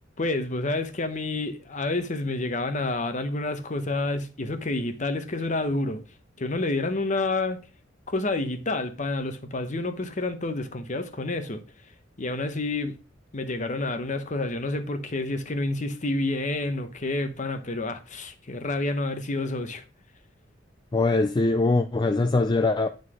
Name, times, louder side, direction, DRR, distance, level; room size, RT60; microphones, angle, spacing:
voice 1, 0.2-6.0 6.4-7.6 8.1-11.6 12.2-13.0 13.3-19.8, left 2 dB, 40° left, 0.9 m, -29 dB
voice 2, 20.9-22.9, left 3 dB, 25° left, 0.4 m, -22 dB
9.6 x 4.0 x 4.9 m
head